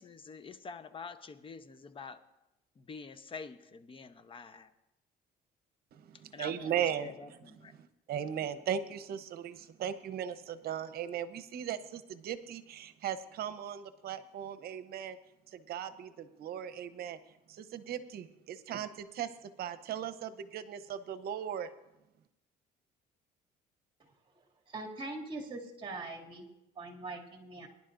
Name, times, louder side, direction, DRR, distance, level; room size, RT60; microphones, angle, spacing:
voice 1, 0.0-2.2 2.8-4.7 6.3-6.7 7.0-7.7, left 4 dB, 30° left, 10 dB, 0.9 m, -46 dB
voice 2, 5.9-7.4 7.7-15.2 15.5-17.2 17.5-21.7, right 9 dB, 65° right, 10 dB, 0.9 m, -38 dB
voice 3, 24.7-26.5 26.7-27.7, right 2 dB, 30° right, -1 dB, 2.5 m, -42 dB
22.5 x 11.0 x 2.6 m, 0.92 s
cardioid pair, 110°, 17 cm